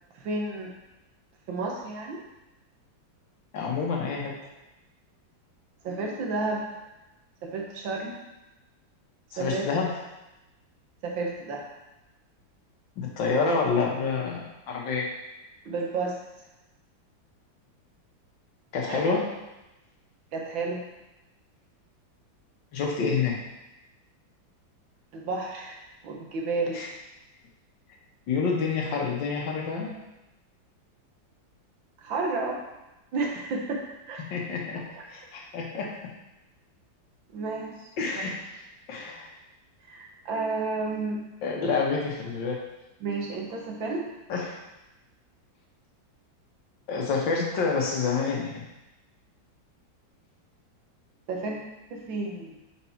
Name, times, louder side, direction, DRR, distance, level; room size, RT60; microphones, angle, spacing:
voice 1, 0.2-0.7 1.5-2.2 5.8-6.6 7.4-8.2 9.4-9.7 11.0-11.7 15.7-16.2 18.9-19.2 20.3-20.8 25.1-25.8 26.0-26.8 32.0-32.6 33.1-34.2 35.0-35.1 37.3-37.9 39.9-41.2 43.0-44.1 51.3-51.6 51.9-52.6, right 3 dB, 80° right, -1 dB, 1.9 m, -31 dB
voice 2, 3.5-4.4 9.4-9.9 13.0-15.1 18.7-19.3 22.7-23.4 26.7-26.9 28.3-29.9 34.2-35.9 38.0-38.4 38.9-39.3 41.4-42.6 44.3-44.6 46.9-48.7, left 4 dB, 75° left, -1 dB, 1.9 m, -28 dB
5.7 x 5.2 x 4.4 m, 0.98 s
omnidirectional pair, 2.1 m